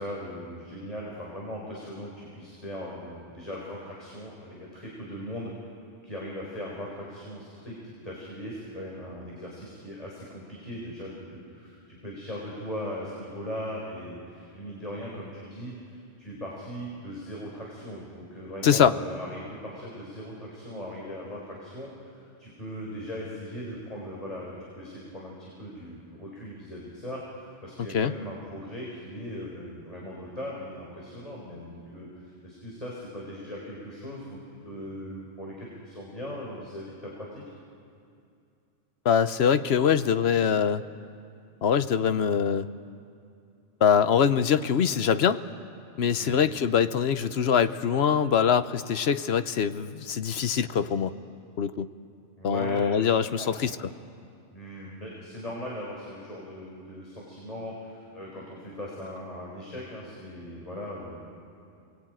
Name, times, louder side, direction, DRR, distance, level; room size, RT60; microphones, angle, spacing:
voice 1, 0.0-5.5 6.0-15.7 16.2-37.4 46.2-46.4 52.4-53.1 53.4-53.6 54.5-61.2, equal, 30° left, -4 dB, 4.4 m, -39 dB
voice 2, 18.6-18.9 27.9-28.1 39.0-40.8 41.6-42.7 43.8-45.4 46.0-51.1 51.6-51.9 52.4-53.7, left 7 dB, 60° left, 12 dB, 1.0 m, -23 dB
28.0 x 20.0 x 9.1 m, 2.5 s
omnidirectional pair, 1.2 m